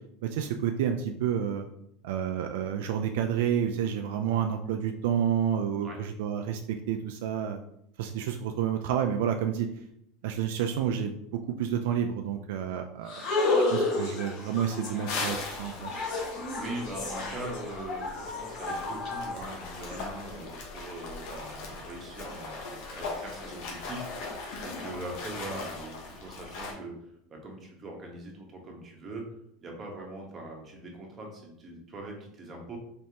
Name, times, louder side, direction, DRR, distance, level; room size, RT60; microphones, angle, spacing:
voice 1, 0.2-1.7 2.0-7.6 8.0-9.7 10.2-13.3 13.7-16.0, right 9 dB, 75° right, 5 dB, 0.3 m, -29 dB
sound 1, 13.1-20.0, left 2 dB, 50° left, 1.5 m, -32 dB
sound 2, 15.1-26.7, left 3 dB, 70° left, 1.1 m, -40 dB
voice 2, 16.6-26.9 27.3-29.2 29.6-32.8, right 2 dB, 25° right, 0 dB, 1.2 m, -41 dB
4.2 x 3.2 x 2.9 m, 0.75 s
supercardioid pair, 130°, 0 cm